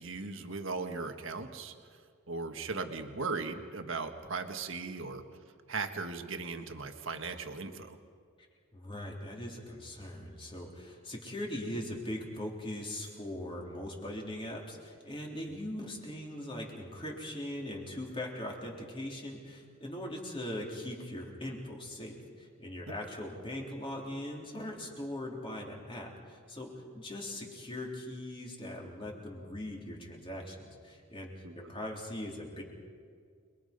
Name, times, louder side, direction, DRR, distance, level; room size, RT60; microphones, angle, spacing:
voice 1, 0.0-1.7 2.3-5.2 5.7-8.0 31.4-31.7, right 4 dB, 60° right, 6 dB, 1.6 m, -38 dB
voice 2, 8.7-32.6, left 1 dB, 25° left, -1 dB, 3.7 m, -40 dB
29.0 x 22.5 x 5.4 m, 2.1 s
head